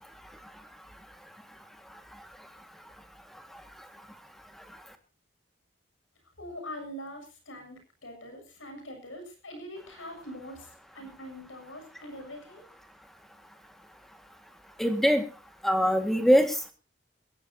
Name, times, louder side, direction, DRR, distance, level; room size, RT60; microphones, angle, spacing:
voice 1, 6.4-12.7, equal, 85° left, 5 dB, 7.2 m, -43 dB
voice 2, 14.8-15.2 15.6-16.7, equal, ahead, 7 dB, 1.8 m, -22 dB
22.0 x 16.0 x 2.8 m, 0.31 s
head